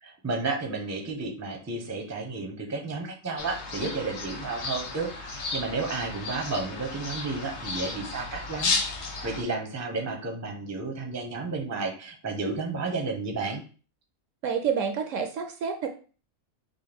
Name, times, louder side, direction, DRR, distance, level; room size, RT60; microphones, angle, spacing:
voice 1, 0.0-8.7 9.2-13.6, right 3 dB, 15° right, 2 dB, 0.6 m, -32 dB
sound 1, 3.4-9.4, left 4 dB, 55° left, 1.1 m, -33 dB
voice 2, 14.4-15.9, right 7 dB, 70° right, 6 dB, 0.9 m, -28 dB
5.4 x 2.2 x 3.4 m, 0.38 s
omnidirectional pair, 1.5 m